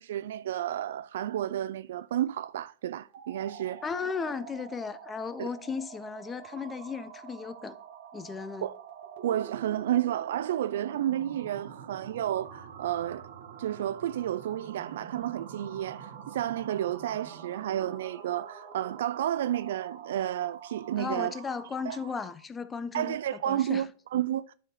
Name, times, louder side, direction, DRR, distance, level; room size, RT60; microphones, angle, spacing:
voice 1, 0.0-3.8 5.4-5.5 8.6-8.8 9.2-13.3 13.6-21.4 21.9-22.0 22.9-24.5, right 11 dB, 80° right, 0.3 m, -31 dB
sound 1, 3.1-22.5, right 7 dB, 65° right, 1.5 m, -46 dB
voice 2, 3.8-7.8 8.1-8.7 21.0-23.2 23.5-23.8, left 5 dB, 15° left, 0.6 m, -35 dB
12.0 x 4.2 x 4.0 m
supercardioid pair, 155°, 0 cm